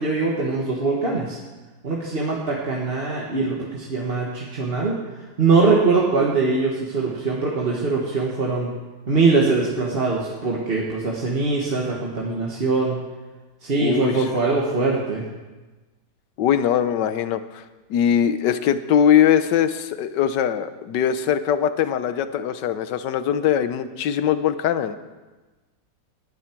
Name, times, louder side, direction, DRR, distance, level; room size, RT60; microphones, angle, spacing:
voice 1, 0.0-1.4 1.8-5.0 5.4-8.7 9.1-13.0 13.6-15.2, right 3 dB, 30° right, -3 dB, 1.6 m, -22 dB
voice 2, 13.8-14.3 16.4-17.6 17.9-25.0, left 9 dB, 70° left, 12 dB, 1.4 m, -21 dB
19.0 x 11.5 x 4.6 m, 1.2 s
omnidirectional pair, 2.1 m